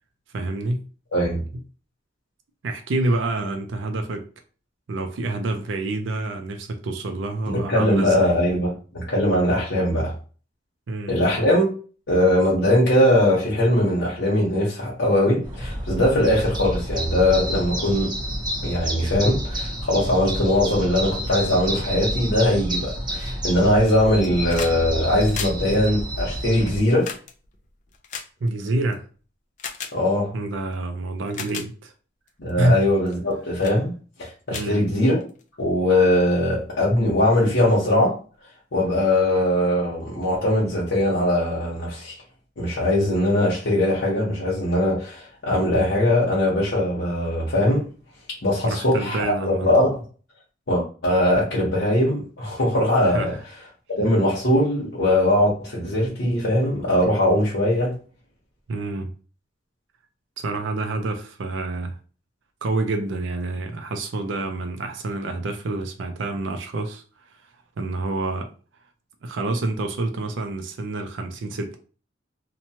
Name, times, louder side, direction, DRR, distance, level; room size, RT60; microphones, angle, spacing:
voice 1, 0.3-0.9 1.5-1.6 2.6-4.3 4.9-8.3 10.9-11.2 28.4-29.0 30.3-31.9 32.6-32.8 34.5-34.8 48.6-49.7 53.0-53.4 58.7-59.1 60.4-62.0 62.6-67.0 67.8-68.5 69.2-71.8, right 2 dB, 80° right, 0.4 m, -27 dB
voice 2, 1.1-1.4 7.5-10.1 11.1-11.7 12.1-18.1 18.6-27.1 29.9-30.3 32.4-33.9 34.2-35.2 35.6-38.2 38.7-42.2 42.6-47.9 48.4-50.0 50.7-53.4 53.9-57.9, left 1 dB, 75° left, 0.9 m, -21 dB
sound 1, 15.4-26.8, equal, 25° right, 0.6 m, -29 dB
sound 2, 24.1-24.8 25.1-28.9 29.6-29.9 30.7-30.8 31.2-31.7 32.3-32.5 33.1-33.3 33.6-33.8 34.2-34.3 34.5-35.4 36.6-36.7, left 7 dB, 40° left, 0.4 m, -36 dB
2.9 x 2.2 x 2.7 m
head